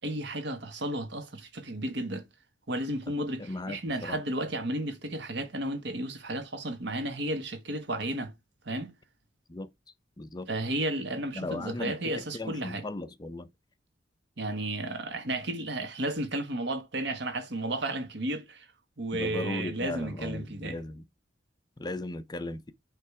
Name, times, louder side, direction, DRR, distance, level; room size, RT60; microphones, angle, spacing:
voice 1, 0.0-2.2 2.7-8.3 8.7-8.9 10.5-12.8 14.4-18.7 19.0-20.8, right 1 dB, 65° right, 1.3 m, -33 dB
voice 2, 3.4-4.2 9.5-9.7 10.2-10.5 11.3-13.5 19.1-21.0 21.8-22.7, left 2 dB, 20° left, 0.5 m, -37 dB
8.4 x 3.2 x 4.7 m
head